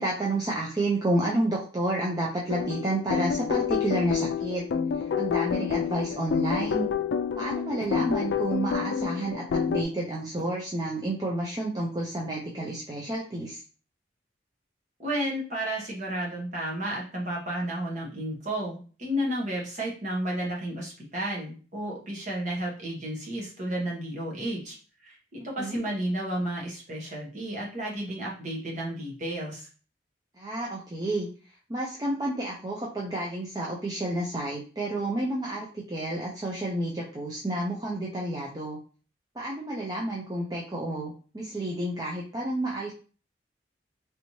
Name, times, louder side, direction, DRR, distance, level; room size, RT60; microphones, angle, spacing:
voice 1, 0.0-4.6 5.2-6.9 7.4-13.6 25.6-25.8 30.4-31.3 31.7-38.8 39.4-42.9, right 1 dB, 20° right, -3 dB, 0.5 m, -30 dB
sound 1, 2.5-9.8, left 7 dB, 75° left, 0.3 m, -28 dB
voice 2, 15.0-24.8 25.0-29.7, right 1 dB, 40° right, -3 dB, 1.1 m, -32 dB
3.3 x 3.0 x 2.7 m, 0.39 s
head